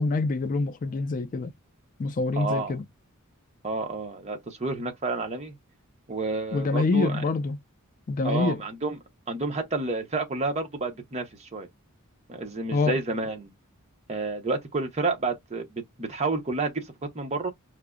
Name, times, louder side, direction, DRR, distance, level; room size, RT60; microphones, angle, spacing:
voice 1, 0.0-1.5 2.0-2.8 6.5-7.6 8.1-8.6 12.7-13.0, left 3 dB, 40° left, 0.4 m, -26 dB
voice 2, 2.3-2.8 3.6-5.5 6.1-7.2 8.2-9.0 9.3-11.7 12.3-13.5 14.1-16.8 17.1-17.5, right 3 dB, 30° right, 0.7 m, -30 dB
4.8 x 2.1 x 2.3 m
head